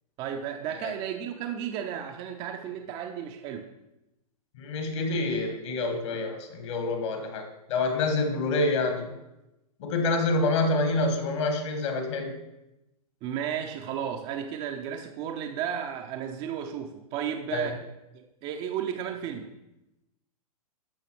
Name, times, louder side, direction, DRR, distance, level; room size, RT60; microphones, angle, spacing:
voice 1, 0.2-3.7 13.2-17.8 18.1-19.5, right 9 dB, 30° right, 4 dB, 0.6 m, -33 dB
voice 2, 4.6-9.1 9.8-12.4 17.5-17.7, left 2 dB, 50° left, 5 dB, 1.6 m, -27 dB
13.5 x 5.6 x 3.0 m, 0.94 s
figure-of-eight pair, 105°, 19 cm